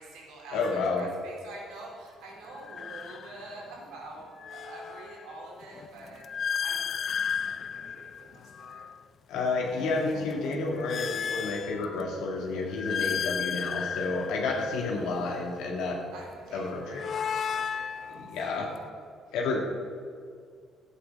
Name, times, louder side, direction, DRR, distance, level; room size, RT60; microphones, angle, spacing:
voice 1, 0.0-8.8 14.1-14.6 15.8-19.4, right 2 dB, 90° right, -2 dB, 3.6 m, -47 dB
voice 2, 0.5-1.1 9.3-16.0 16.5-17.0 18.1-18.7 19.3-19.6, left 3 dB, 85° left, -1 dB, 2.0 m, -30 dB
sound 1, 0.6-0.9 2.5-3.8 4.2-9.0 9.5-12.2 12.6-15.6 16.6-18.9, left 7 dB, 50° left, 0.4 m, -35 dB
12.0 x 8.3 x 7.3 m, 2.1 s
cardioid pair, 110°, 0 cm